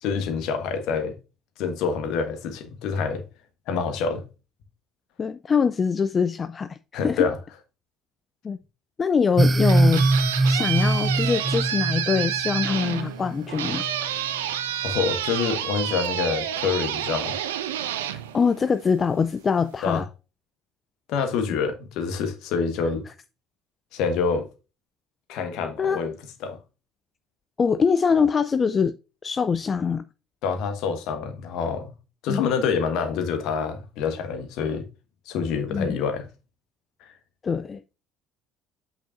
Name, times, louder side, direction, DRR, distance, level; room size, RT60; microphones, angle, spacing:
voice 1, 0.0-1.2 1.6-3.2 3.7-4.2 6.9-7.4 14.8-17.4 19.8-20.0 21.1-23.0 23.9-24.5 25.3-26.1 26.4-26.6 30.4-31.9 32.2-34.8 35.3-36.3 37.0-37.1, left 5 dB, 55° left, 1.4 m, -26 dB
voice 2, 5.2-7.3 8.4-8.6 9.0-10.0 10.5-13.9 18.0-20.1 25.8-26.0 27.6-28.9 29.2-30.0 32.3-32.4 35.7-36.0 37.4-37.8, left 6 dB, 30° left, 0.4 m, -23 dB
sound 1, 9.4-13.9, right 2 dB, 25° right, 0.6 m, -23 dB
sound 2, 9.5-19.1, right 10 dB, 70° right, 0.7 m, -29 dB
8.4 x 5.8 x 2.6 m
figure-of-eight pair, 60°, 0 cm